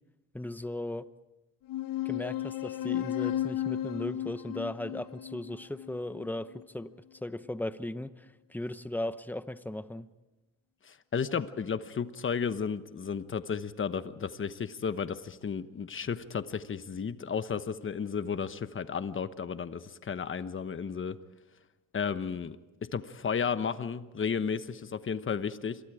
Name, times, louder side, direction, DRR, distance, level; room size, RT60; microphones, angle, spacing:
voice 1, 0.3-1.1 2.0-6.9 7.2-10.1, left 1 dB, 5° left, 12 dB, 0.9 m, -37 dB
sound 1, 1.7-6.6, left 12 dB, 85° left, 0.8 m, -34 dB
voice 2, 10.8-21.2 21.9-22.6 22.9-25.8, left 6 dB, 40° left, 12 dB, 1.1 m, -33 dB
27.5 x 23.0 x 5.0 m, 1.1 s
cardioid pair, 115°, 32 cm